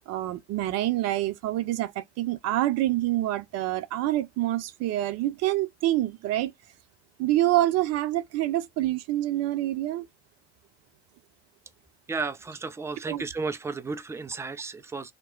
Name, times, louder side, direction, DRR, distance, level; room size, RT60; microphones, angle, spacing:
voice 1, 0.1-6.5 7.2-10.1 13.1-13.2, right 15 dB, 50° right, 0.7 m, -26 dB
voice 2, 12.1-15.1, right 4 dB, 10° right, 0.5 m, -33 dB
2.9 x 2.2 x 3.7 m
hypercardioid pair, 75°, 32 cm